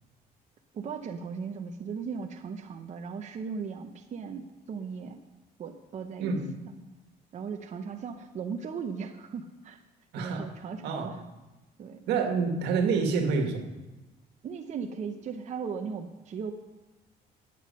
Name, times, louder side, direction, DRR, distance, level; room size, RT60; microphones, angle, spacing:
voice 1, 0.7-5.2 5.6-6.3 7.3-9.8 10.2-11.2 11.8-12.0 14.4-16.5, right 6 dB, 45° right, 5 dB, 0.8 m, -37 dB
voice 2, 6.2-6.5 10.1-10.5 10.8-11.1 12.1-13.6, right 5 dB, 80° right, 4 dB, 1.8 m, -27 dB
13.0 x 9.3 x 5.6 m, 1.1 s
cardioid pair, 110°, 17 cm